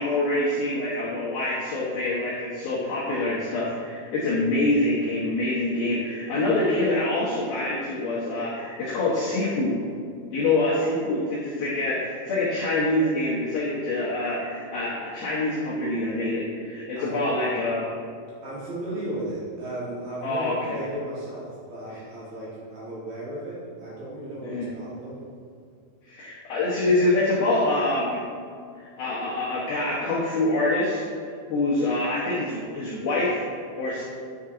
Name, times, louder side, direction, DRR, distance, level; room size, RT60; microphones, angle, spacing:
voice 1, 0.0-9.7 10.3-17.9 20.2-20.8 24.4-24.7 26.0-28.2 28.8-34.0, left 2 dB, 75° left, -7 dB, 2.2 m, -25 dB
voice 2, 17.0-17.3 18.4-25.2, right 1 dB, 60° right, -8 dB, 2.8 m, -35 dB
10.0 x 5.8 x 3.8 m, 2.3 s
omnidirectional pair, 5.9 m